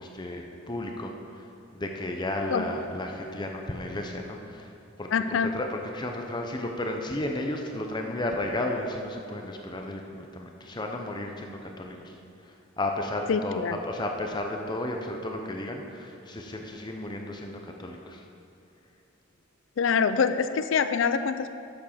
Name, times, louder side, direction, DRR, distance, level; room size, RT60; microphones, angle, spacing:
voice 1, 0.0-1.4 1.7-4.7 5.0-5.1 5.5-12.1 12.8-18.2, left 1 dB, 20° left, 2 dB, 0.7 m, -33 dB
voice 2, 5.1-5.6 13.3-13.8 19.8-21.5, left 6 dB, 65° left, 11 dB, 0.4 m, -25 dB
8.6 x 7.3 x 5.8 m, 2.5 s
head